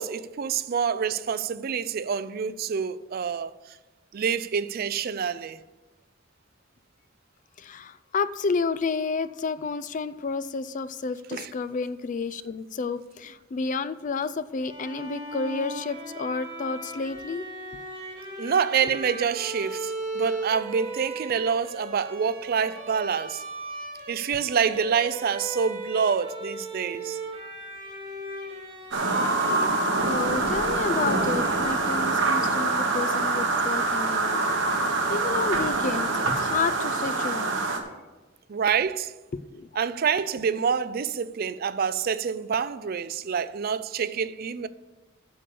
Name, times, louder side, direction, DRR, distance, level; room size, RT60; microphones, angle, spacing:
voice 1, 0.0-3.5 4.1-5.6 11.3-11.5 18.4-23.4 24.1-27.2 38.5-39.1 39.8-44.7, right 6 dB, 50° right, 0.4 m, -27 dB
voice 2, 7.6-17.5 30.0-34.4 35.1-37.5 39.5-39.7, left 4 dB, 40° left, 0.4 m, -30 dB
Bowed string instrument, 14.6-32.4, right 1 dB, 30° right, 2.1 m, -38 dB
sound 1, 28.9-37.8, right 3 dB, 70° right, 1.3 m, -25 dB
8.6 x 6.8 x 6.8 m
head